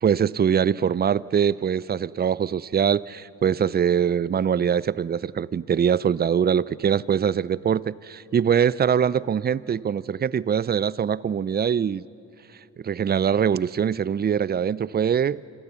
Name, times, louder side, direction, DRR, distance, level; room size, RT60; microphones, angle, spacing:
voice 1, 0.0-12.0 12.8-15.4, right 8 dB, 25° right, 21 dB, 0.5 m, -23 dB
27.5 x 24.0 x 7.0 m, 2.8 s
hypercardioid pair, 55°, 42 cm